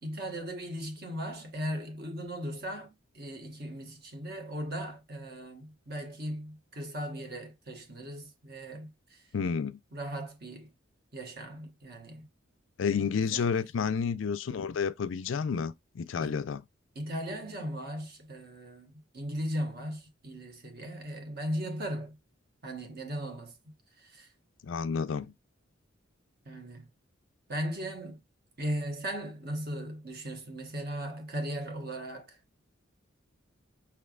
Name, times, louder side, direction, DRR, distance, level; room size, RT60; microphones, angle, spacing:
voice 1, 0.0-9.3 9.9-10.7 11.1-12.3 12.9-13.6 16.2-16.4 16.9-22.2 22.6-23.6 24.0-24.3 26.4-26.9 27.5-28.2 28.6-32.4, equal, 50° right, 1.2 m, -38 dB
voice 2, 9.3-9.8 12.8-16.6 24.6-25.3, left 6 dB, 75° left, 0.4 m, -30 dB
5.8 x 3.3 x 2.4 m
head